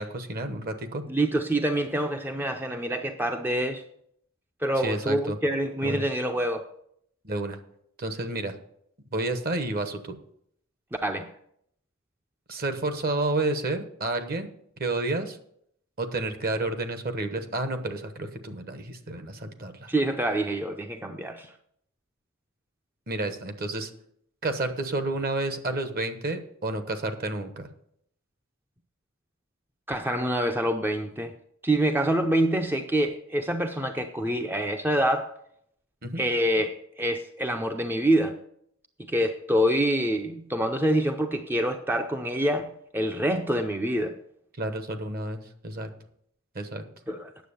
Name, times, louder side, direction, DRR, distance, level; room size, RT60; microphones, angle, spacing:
voice 1, 0.0-1.0 4.8-5.4 5.8-6.0 7.2-7.6 8.0-8.5 9.1-10.2 12.5-14.5 14.8-15.4 16.0-19.9 23.1-23.9 24.4-27.7 36.0-36.2 44.6-45.9 46.5-46.8, right 2 dB, 45° right, 1.1 m, -30 dB
voice 2, 1.1-3.8 4.6-6.7 11.0-11.3 19.9-21.5 29.9-31.3 31.6-35.3 36.2-38.4 39.1-44.2 47.1-47.3, right 1 dB, 10° right, 0.5 m, -26 dB
9.4 x 7.1 x 6.9 m
head